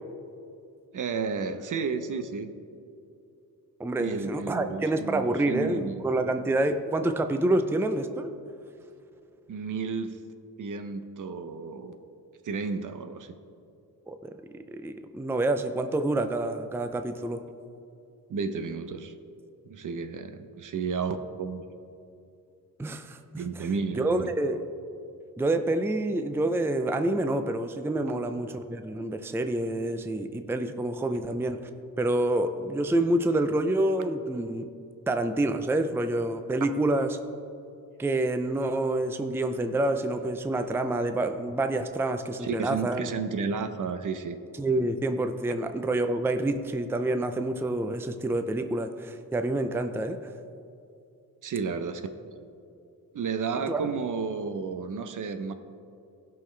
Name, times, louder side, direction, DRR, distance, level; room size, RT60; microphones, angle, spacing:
voice 1, 0.9-2.5 4.0-6.1 9.5-10.2 10.6-12.0 12.4-13.3 18.3-19.1 19.6-21.6 23.4-24.3 42.4-44.4 51.4-52.2 53.1-55.5, right 5 dB, 55° right, 9 dB, 0.7 m, -32 dB
voice 2, 3.8-8.3 14.1-14.2 14.7-17.4 22.8-23.7 24.0-24.6 25.4-31.6 32.0-34.7 35.1-37.2 38.0-43.1 44.6-50.2 53.7-53.8, right 1 dB, 5° right, 8 dB, 0.5 m, -27 dB
15.5 x 5.7 x 3.3 m, 2.5 s
cardioid pair, 75°, 37 cm